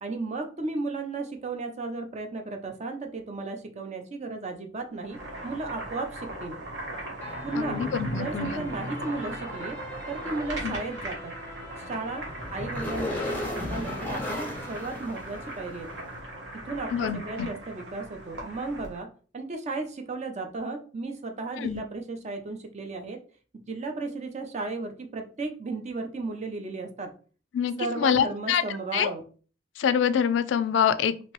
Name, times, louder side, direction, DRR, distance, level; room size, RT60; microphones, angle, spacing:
voice 1, 0.0-6.6 7.4-9.8 10.1-11.3 11.8-15.9 16.7-19.1 19.3-23.2 23.7-27.1 27.8-29.2, right 3 dB, 40° right, 5 dB, 0.5 m, -34 dB
Boiling, 4.9-19.0, right 1 dB, 70° right, 1.2 m, -39 dB
sound 1, 7.2-15.9, left 1 dB, 10° left, 0.7 m, -37 dB
voice 2, 7.5-8.6 10.6-10.8 16.9-17.5 21.6-21.8 27.5-28.6 28.9-29.1 29.8-31.3, left 8 dB, 70° left, 13 dB, 0.3 m, -26 dB
2.9 x 2.7 x 3.0 m, 0.40 s
head